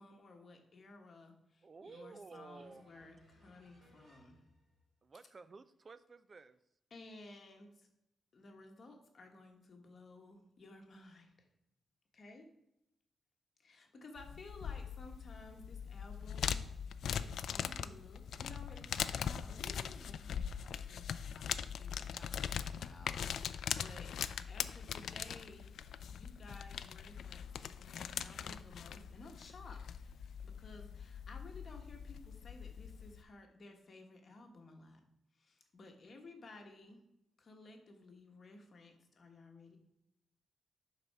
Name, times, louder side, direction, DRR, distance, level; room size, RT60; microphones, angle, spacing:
voice 1, 0.0-4.4 6.9-7.9 8.3-11.5 12.1-12.5 13.6-16.6 17.0-25.7 26.1-30.1 30.4-35.0 35.3-37.0 37.4-39.8, left 2 dB, 40° left, 3 dB, 1.3 m, -56 dB
voice 2, 1.6-3.1 5.0-6.6, right 4 dB, 30° right, 14 dB, 0.4 m, -54 dB
voice 3, 2.5-4.5, equal, 45° right, -3 dB, 3.2 m, -66 dB
sound 1, 14.2-33.2, left 8 dB, 70° left, 0.3 m, -41 dB
11.0 x 4.2 x 4.7 m, 0.84 s
wide cardioid pair, 165°, 0 cm